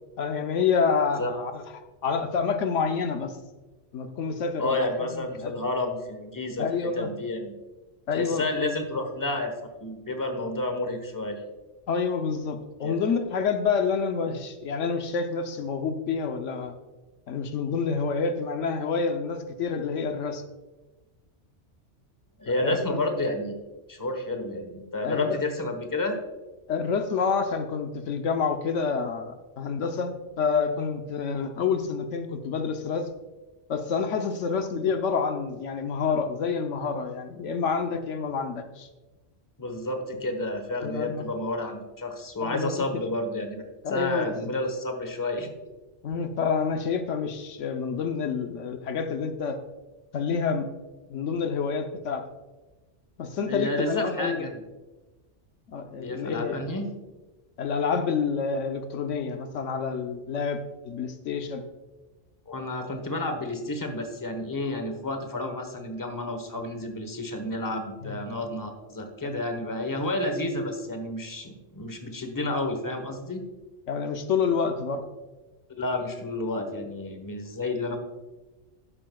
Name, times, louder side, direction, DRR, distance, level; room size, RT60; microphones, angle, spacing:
voice 1, 0.2-1.6 2.0-3.4 3.9-5.5 6.6-7.1 8.1-8.6 11.9-16.7 17.3-20.4 22.6-23.0 25.0-25.4 26.7-33.1 33.7-38.9 40.8-41.3 42.4-42.9 43.8-44.5 46.0-49.6 50.1-50.7 51.1-52.2 53.2-54.5 55.7-56.6 57.6-61.6 68.0-68.2 73.9-75.0, left 5 dB, 80° left, 7 dB, 1.1 m, -28 dB
voice 2, 4.6-7.5 8.1-9.5 9.8-11.4 12.8-13.2 22.4-23.5 23.9-26.2 39.6-43.6 43.9-45.5 53.5-54.6 56.0-56.9 62.5-73.4 75.8-78.0, left 2 dB, 15° left, 5 dB, 1.1 m, -30 dB
12.5 x 9.9 x 2.3 m, 1.2 s
omnidirectional pair, 1.3 m